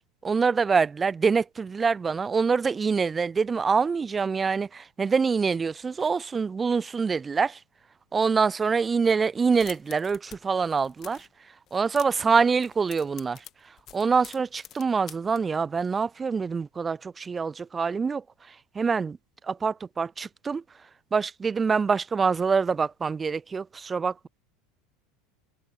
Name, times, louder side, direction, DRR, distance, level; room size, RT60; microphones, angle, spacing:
voice 1, 0.0-7.6 8.1-11.3 11.7-13.4 13.9-18.2 18.8-19.2 19.5-20.6 21.1-24.3, right 5 dB, 20° right, 0.3 m, -25 dB
sound 1, 9.4-10.4 10.6-11.3 11.7-12.3 12.6-15.4, left 12 dB, 40° left, 2.1 m, -46 dB
open air
figure-of-eight pair, 75°, 0 cm